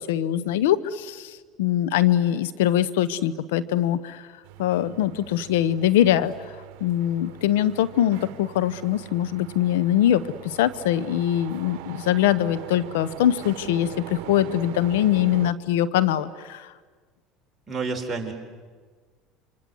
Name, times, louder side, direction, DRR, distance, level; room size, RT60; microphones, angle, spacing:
voice 1, 0.1-4.3 4.6-6.5 6.8-16.7, left 11 dB, 90° left, 15 dB, 0.9 m, -23 dB
sound 1, 4.4-15.5, right 15 dB, 75° right, 1.1 m, -42 dB
voice 2, 17.7-18.3, right 4 dB, 15° right, 0 dB, 4.7 m, -29 dB
28.0 x 26.0 x 8.0 m, 1.5 s
supercardioid pair, 105°, 0 cm